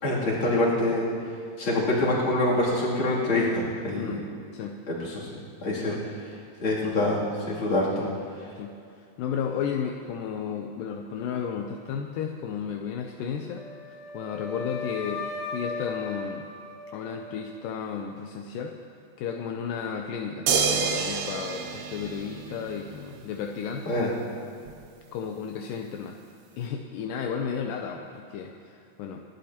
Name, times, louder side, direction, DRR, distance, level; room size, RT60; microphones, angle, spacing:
voice 1, 0.0-1.0 1.6-4.1 4.9-5.9 6.6-8.0 23.9-24.1, left 1 dB, 35° left, -6 dB, 3.1 m, -25 dB
voice 2, 3.9-4.2 4.5-4.8 5.8-6.1 8.0-8.2 8.6-13.6 14.1-16.5 16.9-18.8 19.2-23.9 25.1-26.2 26.5-29.2, left 7 dB, 80° left, 2 dB, 2.0 m, -33 dB
Wind instrument woodwind instrument, 13.6-17.7, left 4 dB, 55° left, 3.4 m, -37 dB
sound 1, 20.5-22.9 24.7-24.8, right 5 dB, 90° right, 3.1 m, -28 dB
27.5 x 11.5 x 2.9 m, 2.5 s
omnidirectional pair, 4.6 m